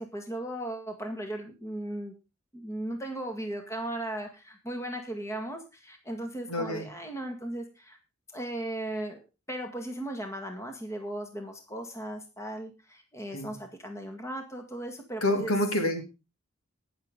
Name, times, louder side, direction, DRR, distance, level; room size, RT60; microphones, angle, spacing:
voice 1, 0.0-2.1 2.5-8.0 8.3-9.2 9.5-15.5, right 1 dB, 15° left, 4 dB, 1.8 m, -37 dB
voice 2, 6.5-6.9 13.3-13.5 15.2-16.0, left 1 dB, 90° left, 5 dB, 2.5 m, -27 dB
19.5 x 6.7 x 3.7 m, 0.29 s
head